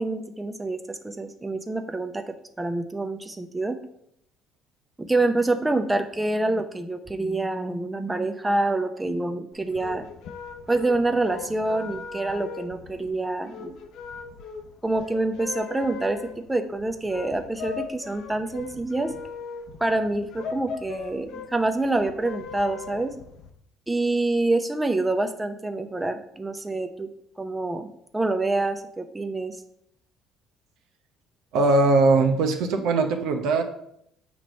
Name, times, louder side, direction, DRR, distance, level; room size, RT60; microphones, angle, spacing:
voice 1, 0.0-3.8 5.0-10.1 10.7-13.7 14.8-16.2 16.5-19.1 19.8-23.1 23.9-27.1 27.4-27.9 28.1-29.6, right 2 dB, 15° right, 7 dB, 0.6 m, -26 dB
sound 1, 9.5-23.5, left 5 dB, 70° left, 0.7 m, -39 dB
voice 2, 31.5-33.6, right 3 dB, 70° right, 6 dB, 0.8 m, -20 dB
5.9 x 3.1 x 5.2 m, 0.73 s
hypercardioid pair, 65°, 0 cm